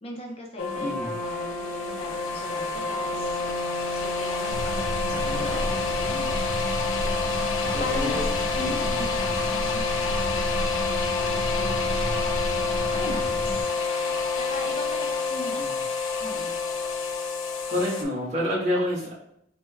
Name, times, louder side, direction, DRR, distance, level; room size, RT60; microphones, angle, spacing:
voice 1, 0.0-3.4 3.9-6.4 7.0-7.3 7.6-12.2 12.7-15.8 16.2-16.6, left 2 dB, 30° left, -1 dB, 0.4 m, -39 dB
sound 1, 0.6-18.0, left 4 dB, 90° left, 0.4 m, -28 dB
voice 2, 0.8-1.1 5.1-6.1 7.7-9.1 15.4-15.8 17.7-19.1, left 1 dB, 40° right, -6 dB, 1.0 m, -30 dB
sound 2, 4.5-13.6, equal, 80° right, 0.7 m, -32 dB
3.2 x 2.0 x 3.3 m, 0.74 s
head